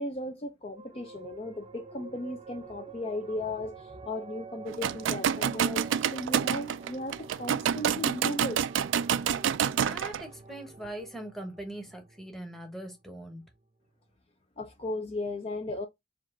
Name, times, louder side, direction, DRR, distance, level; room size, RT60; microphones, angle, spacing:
voice 1, 0.0-8.6 14.6-15.9, left 1 dB, 30° left, 0.5 m, -36 dB
sound 1, 0.7-13.6, right 4 dB, 30° right, 0.6 m, -49 dB
sound 2, 4.7-10.2, right 8 dB, 85° right, 0.3 m, -28 dB
voice 2, 9.7-13.4, right 1 dB, ahead, 1.1 m, -41 dB
4.6 x 2.4 x 3.7 m
head